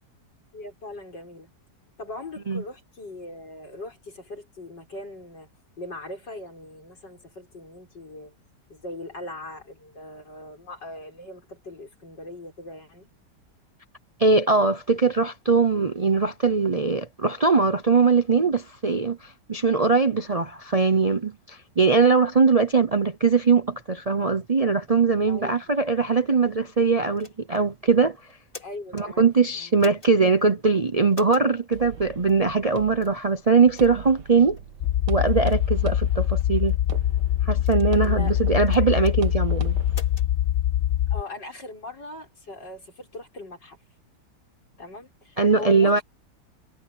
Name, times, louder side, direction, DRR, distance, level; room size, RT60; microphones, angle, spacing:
voice 1, 0.5-1.5 2.0-5.5 5.8-8.3 8.7-13.1 25.3-25.7 28.6-29.7 38.0-38.3 41.1-43.8 44.8-46.0, left 2 dB, 85° left, 7.4 m, -40 dB
voice 2, 14.2-28.2 28.9-34.6 35.1-36.8 37.4-39.8 45.4-46.0, right 4 dB, 40° right, 0.5 m, -21 dB
sound 1, 27.2-27.6 28.3-29.1 29.8-30.1 31.1-31.5 32.3-32.4 33.0-33.2 33.8-34.0 34.6-34.7 35.3-35.6 36.4-36.8 37.6-38.2 38.7-39.2 39.9-40.3, left 4 dB, 30° left, 2.7 m, -45 dB
sound 2, 31.7-40.0, right 6 dB, 80° right, 1.9 m, -40 dB
sound 3, 34.8-41.2, left 12 dB, 65° left, 0.6 m, -23 dB
omnidirectional pair, 1.8 m